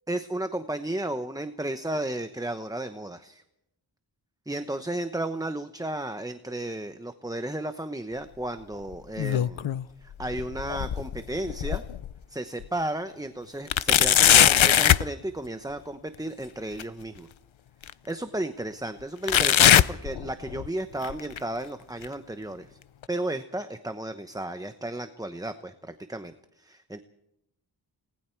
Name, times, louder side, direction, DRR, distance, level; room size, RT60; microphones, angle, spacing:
voice 1, 0.1-3.4 4.5-9.7 10.0-11.8 12.3-17.3 18.1-22.8 23.1-27.0, right 1 dB, 10° right, 9 dB, 0.9 m, -33 dB
sound 1, 8.9-9.8 10.2-12.1 12.6-12.7 13.7-15.1 16.8-16.9 17.8-17.9 19.3-20.7 21.0-21.4 22.0-22.1 23.0-23.1, left 10 dB, 90° left, 0.7 m, -21 dB
29.5 x 19.5 x 4.6 m, 0.84 s
wide cardioid pair, 75°, 46 cm